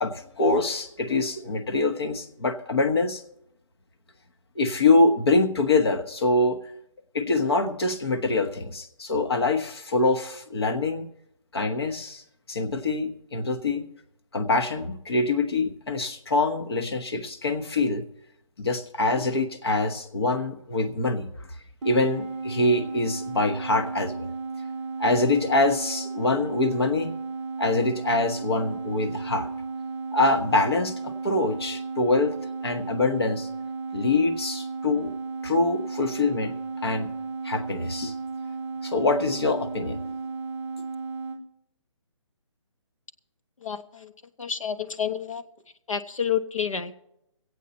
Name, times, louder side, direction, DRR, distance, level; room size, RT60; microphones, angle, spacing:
voice 1, 0.0-3.2 4.5-6.6 7.1-11.1 11.5-12.2 12.5-13.9 14.3-18.0 18.6-21.3 21.8-24.3 25.0-27.1 27.6-29.5 30.1-32.4 32.6-33.5 33.9-35.1 35.4-36.5 36.8-37.1 37.4-38.1 38.8-40.1, left 2 dB, 50° left, 7 dB, 1.2 m, -24 dB
sound 1, 21.8-41.4, right 4 dB, 5° right, 0.8 m, -34 dB
voice 2, 43.6-44.1 44.4-45.4 45.9-46.9, left 8 dB, 85° left, 8 dB, 1.1 m, -29 dB
23.5 x 8.4 x 4.1 m, 0.80 s
hypercardioid pair, 175°, 16 cm